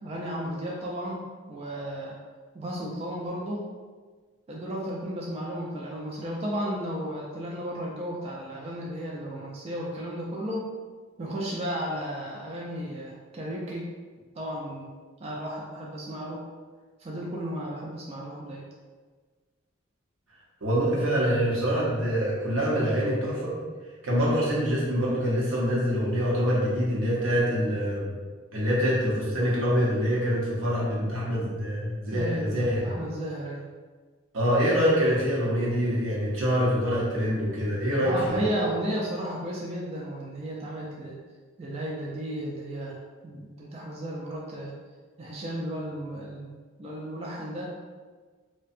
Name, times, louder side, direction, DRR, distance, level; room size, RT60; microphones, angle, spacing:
voice 1, 0.0-2.2 2.5-3.6 4.5-10.7 11.2-13.9 14.4-14.9 15.2-16.4 17.0-18.6 32.1-33.7 38.0-41.2 41.6-43.0 43.2-44.7 45.2-47.7, equal, 30° right, -3 dB, 0.3 m, -34 dB
voice 2, 20.6-23.5 24.0-28.1 28.5-32.8 34.3-38.4, equal, 85° right, -5 dB, 0.8 m, -25 dB
2.6 x 2.2 x 2.4 m, 1.4 s
head